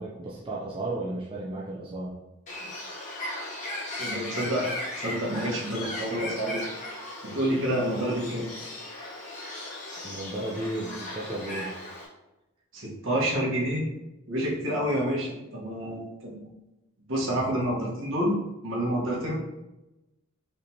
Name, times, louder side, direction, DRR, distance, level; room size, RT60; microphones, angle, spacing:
voice 1, 0.0-2.2 9.2-9.3 10.0-11.9, right 2 dB, 25° right, -5 dB, 0.5 m, -34 dB
Bird, 2.5-12.1, left 1 dB, 35° left, 1.0 m, -37 dB
voice 2, 4.0-6.6 7.2-8.4 12.7-13.8 14.3-16.4 17.1-18.4 18.6-19.3, equal, 65° right, -4 dB, 1.3 m, -28 dB
5.1 x 3.3 x 2.8 m, 0.98 s
head